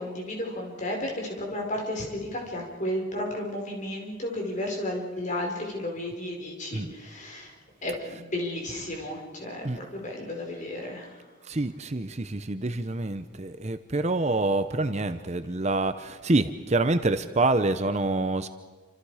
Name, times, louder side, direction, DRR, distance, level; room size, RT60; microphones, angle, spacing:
voice 1, 0.0-7.5 7.8-11.1, left 1 dB, 35° left, 1 dB, 4.9 m, -33 dB
voice 2, 11.5-18.5, right 2 dB, 30° right, 10 dB, 0.7 m, -26 dB
28.0 x 26.5 x 5.0 m, 1.5 s
head